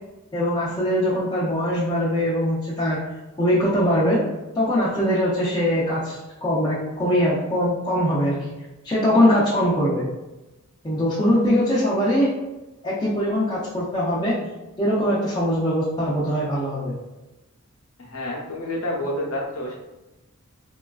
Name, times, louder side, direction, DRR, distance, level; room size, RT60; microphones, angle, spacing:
voice 1, 0.3-3.0 3.4-4.2 4.5-8.4 8.8-10.1 10.8-12.3 12.8-14.4 14.8-16.9, equal, 20° left, -9 dB, 0.5 m, -22 dB
voice 2, 18.0-19.8, left 1 dB, 70° left, -1 dB, 0.6 m, -29 dB
3.0 x 2.3 x 2.3 m, 1.0 s
head